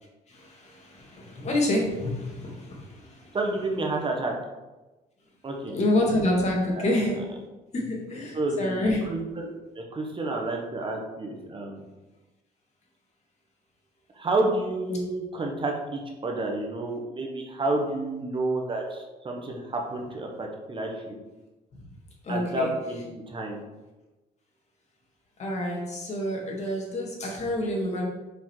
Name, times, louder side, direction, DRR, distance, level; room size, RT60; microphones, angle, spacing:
voice 1, 0.3-3.4 5.7-7.2 7.7-9.1 14.9-15.0 21.7-21.8 22.2-22.7 25.4-28.0, left 1 dB, 40° left, -1 dB, 2.1 m, -28 dB
voice 2, 3.3-4.3 5.4-5.8 6.7-7.0 8.3-11.8 14.2-21.1 22.3-23.6, right 2 dB, 30° right, 1 dB, 1.1 m, -30 dB
5.6 x 5.1 x 4.5 m, 1.1 s
cardioid pair, 110°, 17 cm